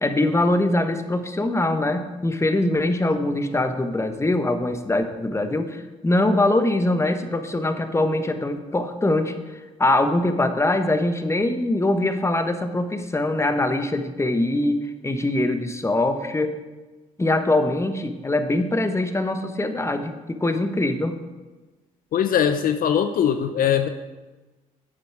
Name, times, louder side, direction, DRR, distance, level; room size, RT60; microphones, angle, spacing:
voice 1, 0.0-16.5 17.2-21.2, left 2 dB, 15° left, 8 dB, 1.1 m, -23 dB
voice 2, 22.1-23.9, left 9 dB, 60° left, 8 dB, 0.6 m, -21 dB
9.2 x 7.3 x 4.8 m, 1.2 s
hypercardioid pair, 50°, 17 cm